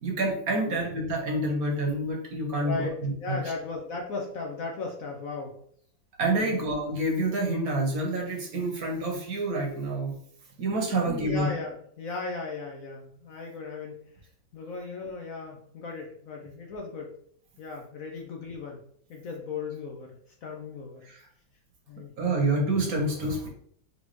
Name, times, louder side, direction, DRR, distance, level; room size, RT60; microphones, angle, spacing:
voice 1, 0.0-3.4 6.2-10.2 10.6-11.5 21.0-21.3 22.2-23.5, right 2 dB, 60° right, 0 dB, 1.3 m, -28 dB
voice 2, 2.6-2.9 3.2-5.5 6.3-6.6 10.9-14.1 14.5-17.1 17.6-18.8 19.1-20.1 20.4-21.0 21.9-22.1, left 3 dB, 65° left, 1 dB, 0.9 m, -36 dB
4.0 x 3.4 x 3.0 m, 0.62 s
omnidirectional pair, 1.9 m